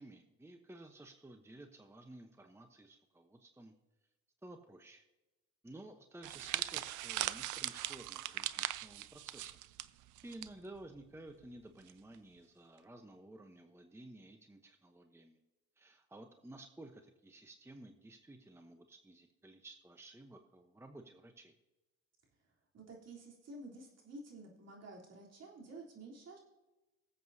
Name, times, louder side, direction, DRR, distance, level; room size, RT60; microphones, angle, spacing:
voice 1, 0.0-3.7 4.4-5.0 5.6-9.6 10.2-15.4 15.8-21.5, right 1 dB, 10° right, 6 dB, 0.9 m, -54 dB
sound 1, 6.2-10.5 10.8-11.0 11.9-12.2, right 14 dB, 85° right, 0.5 m, -40 dB
voice 2, 22.7-26.4, right 2 dB, 55° right, -2 dB, 3.5 m, -51 dB
20.5 x 7.8 x 2.8 m, 1.0 s
cardioid pair, 90°, 30 cm